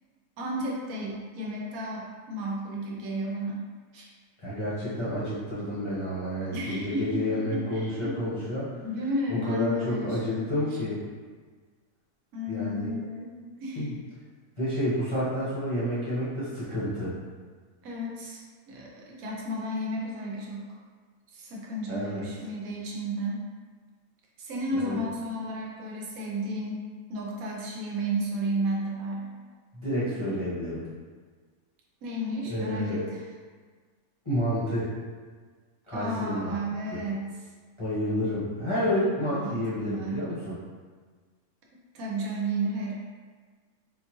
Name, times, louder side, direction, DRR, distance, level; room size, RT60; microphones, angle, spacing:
voice 1, 0.4-3.6 3.9-4.1 6.5-8.3 8.8-10.5 12.3-13.3 13.6-14.0 17.8-18.4 18.7-20.6 21.3-23.5 24.4-26.8 27.1-29.3 32.0-33.2 35.9-37.3 39.4-40.2 41.9-42.9, equal, 80° right, -3 dB, 1.1 m, -33 dB
voice 2, 4.4-8.7 9.3-11.0 12.5-12.9 13.7-13.9 14.6-17.1 21.9-22.3 24.7-25.0 29.7-30.8 32.4-33.1 34.2-34.9 35.9-36.6 36.9-37.0 37.8-40.5, equal, 25° left, -11 dB, 0.9 m, -29 dB
3.8 x 2.3 x 2.9 m, 1.5 s
omnidirectional pair, 1.5 m